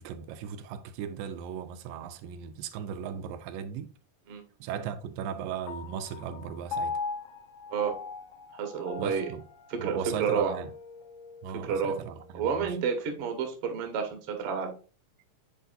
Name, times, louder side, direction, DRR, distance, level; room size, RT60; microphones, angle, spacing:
voice 1, 0.0-3.9 4.6-7.0 9.0-9.4 9.8-10.7 11.4-12.8, right 8 dB, 85° right, 2.3 m, -37 dB
Piano, 5.7-12.4, left 4 dB, 75° left, 1.5 m, -39 dB
voice 2, 8.6-9.3 9.7-10.5 11.6-12.0 12.3-14.7, right 6 dB, 55° right, 1.7 m, -30 dB
9.3 x 4.3 x 2.6 m
omnidirectional pair, 4.0 m